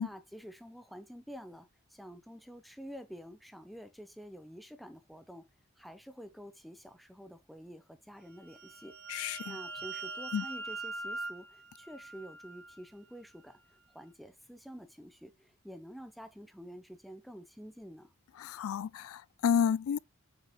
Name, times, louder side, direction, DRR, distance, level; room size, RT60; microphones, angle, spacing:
voice 1, 0.0-5.5 5.8-8.9 9.4-13.6 13.9-18.1, equal, ahead, 0.8 m, -49 dB
sound 1, 8.3-12.8, right 3 dB, 50° right, 2.2 m, -42 dB
voice 2, 9.1-9.6 10.3-10.4 18.4-20.0, left 8 dB, 85° left, 0.3 m, -31 dB
7.6 x 5.9 x 2.3 m
head